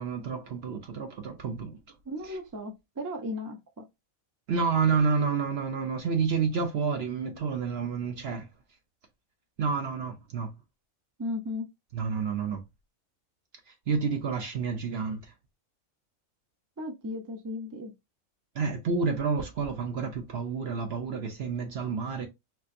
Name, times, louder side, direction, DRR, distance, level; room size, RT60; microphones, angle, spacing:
voice 1, 0.0-1.8 2.3-2.4 4.5-8.5 9.6-10.5 11.9-12.6 13.9-15.3 18.6-22.3, right 5 dB, 60° right, 0.8 m, -29 dB
voice 2, 2.1-3.8 11.2-11.7 16.8-17.9, left 1 dB, 20° right, 0.5 m, -35 dB
4.4 x 2.5 x 2.6 m
omnidirectional pair, 1.4 m